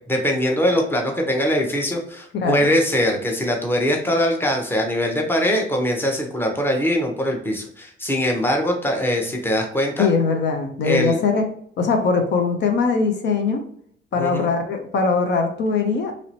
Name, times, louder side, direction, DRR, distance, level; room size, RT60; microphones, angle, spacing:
voice 1, 0.1-10.1 10.8-11.2 14.2-14.5, equal, 10° left, 1 dB, 0.8 m, -22 dB
voice 2, 2.4-2.8 10.0-11.5 11.8-13.6 14.1-16.2, left 4 dB, 65° left, 4 dB, 0.6 m, -21 dB
3.0 x 2.9 x 2.7 m, 0.65 s
cardioid pair, 90°, 20 cm